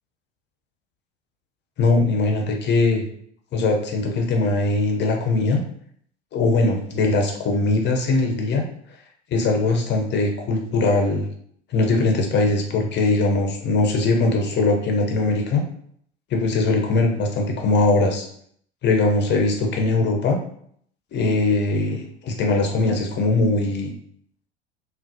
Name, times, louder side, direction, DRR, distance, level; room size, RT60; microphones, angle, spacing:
voice 1, 1.8-3.0 3.5-5.6 6.3-8.7 9.3-11.3 11.7-15.7 16.3-18.3 18.8-20.4 21.1-23.9, left 2 dB, 30° left, 2 dB, 0.7 m, -21 dB
3.8 x 2.2 x 2.7 m, 0.65 s
figure-of-eight pair, 75°, 34 cm